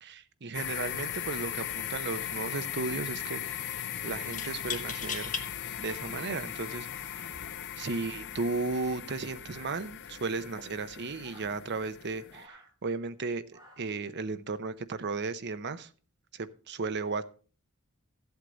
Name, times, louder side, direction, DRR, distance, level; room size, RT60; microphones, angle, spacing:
voice 1, 0.0-5.3 5.8-7.3 7.8-13.4 13.8-15.9 16.3-17.2, right 3 dB, 50° right, 12 dB, 0.7 m, -35 dB
sound 1, 0.5-12.5, left 9 dB, 55° left, 0.7 m, -38 dB
sound 2, 1.2-1.4 1.7-2.4 4.3-5.5 6.2-6.3 7.2-7.5, left 6 dB, 35° left, 1.2 m, -38 dB
sound 3, 9.5-10.3 11.2-11.6 12.3-12.7 13.5-14.0, right 1 dB, 15° right, 4.1 m, -55 dB
14.5 x 8.1 x 4.0 m, 0.39 s
head